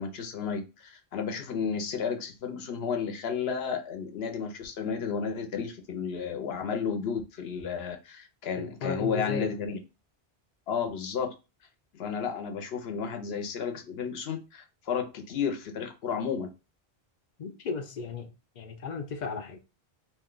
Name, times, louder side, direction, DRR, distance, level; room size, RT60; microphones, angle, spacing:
voice 1, 0.0-9.8 10.7-11.3 11.9-16.5, left 6 dB, 75° left, 0.9 m, -32 dB
voice 2, 8.6-9.5 17.4-18.3 18.6-19.6, left 5 dB, 55° left, 0.5 m, -35 dB
2.6 x 2.2 x 3.7 m
omnidirectional pair, 1.1 m